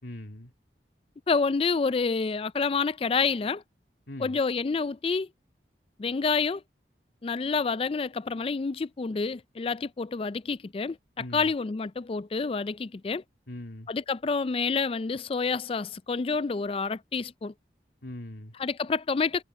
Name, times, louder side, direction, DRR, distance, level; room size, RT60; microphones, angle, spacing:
voice 1, 0.0-0.5 4.1-4.4 11.2-11.5 13.5-13.9 18.0-18.5, left 1 dB, 80° left, 2.5 m, -41 dB
voice 2, 1.3-3.6 4.2-5.3 6.0-6.6 7.2-13.2 13.9-17.5 18.6-19.4, left 4 dB, 30° left, 0.3 m, -28 dB
head